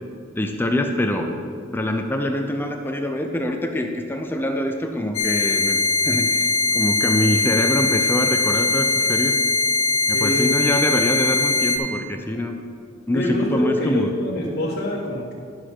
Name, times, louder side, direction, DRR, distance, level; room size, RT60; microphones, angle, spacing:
voice 1, 0.4-1.3 1.7-9.4 10.1-12.5 13.1-14.1, left 1 dB, 10° left, 4 dB, 0.6 m, -24 dB
sound 1, 5.1-11.8, left 3 dB, 90° left, 1.3 m, -21 dB
voice 2, 10.1-10.5 13.1-15.3, left 1 dB, 55° left, -6 dB, 1.4 m, -25 dB
11.0 x 6.9 x 4.4 m, 2.3 s
head